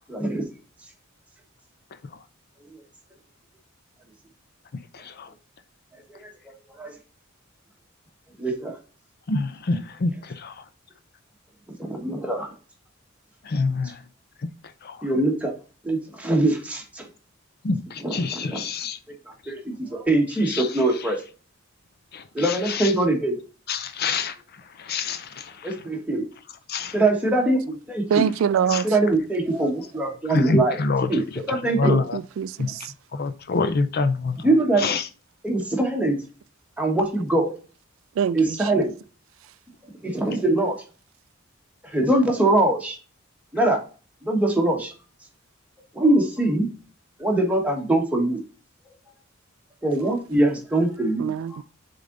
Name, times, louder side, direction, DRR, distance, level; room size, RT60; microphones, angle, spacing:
voice 1, 0.1-0.5 6.1-6.9 8.4-8.8 11.8-12.5 15.0-15.6 15.8-17.1 18.0-18.7 19.2-21.2 22.3-23.4 25.6-26.3 26.9-28.3 28.8-30.8 31.1-32.0 34.4-34.9 35.4-36.2 36.8-37.5 38.3-38.9 40.0-40.8 41.8-43.0 43.5-43.8 44.2-44.9 45.9-46.7 47.2-48.4 49.8-51.6, right 2 dB, 5° right, 1.4 m, -23 dB
voice 2, 4.9-5.3 9.3-10.5 13.5-13.9 14.8-15.0 17.6-19.0 20.5-20.6 22.1-22.2 22.7-22.9 23.7-24.3 24.8-25.5 26.7-26.9 28.7-28.8 30.3-31.2 31.5-32.2 32.6-32.7 33.1-34.4 34.8-35.0, left 4 dB, 50° left, 0.5 m, -26 dB
voice 3, 28.1-28.9 31.8-32.9 38.2-38.7 51.2-51.6, right 7 dB, 70° right, 0.3 m, -25 dB
6.7 x 3.9 x 3.8 m
head